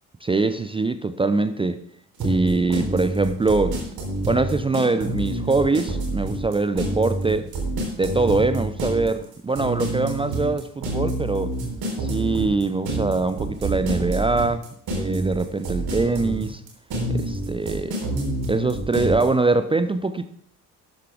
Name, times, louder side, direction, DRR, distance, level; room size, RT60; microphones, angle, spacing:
voice 1, 0.2-1.8 2.2-3.8 4.2-7.5 8.0-11.5 12.0-14.6 14.9-16.6 17.1-18.0 18.5-20.3, right 3 dB, 10° right, 11 dB, 0.5 m, -23 dB
sound 1, 2.2-19.2, right 1 dB, 50° right, 3.8 m, -27 dB
12.5 x 11.5 x 3.5 m, 0.65 s
figure-of-eight pair, 50°, 47 cm